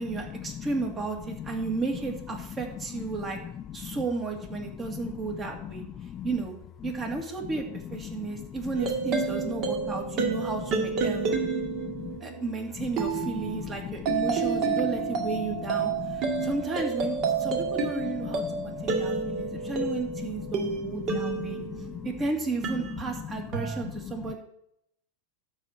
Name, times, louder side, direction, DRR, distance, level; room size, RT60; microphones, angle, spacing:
voice 1, 0.0-3.4 3.7-5.8 6.2-6.5 6.8-11.5 12.2-21.6 22.0-24.4, right 3 dB, 20° right, 2 dB, 2.4 m, -33 dB
voice 2, 6.0-6.3 8.1-8.6 9.8-9.9 11.5-12.2 12.8-13.0 13.4-13.6 14.2-14.3 16.0-16.5 17.4-17.6 18.2-19.7 20.1-20.5 21.1-22.1 23.3-23.4 24.2-24.3, left 9 dB, 30° left, 11 dB, 0.5 m, -39 dB
sound 1, 8.7-22.1 22.6-23.8, right 4 dB, 40° right, 2.3 m, -30 dB
12.0 x 4.5 x 8.0 m, 0.75 s
supercardioid pair, 140°, 0 cm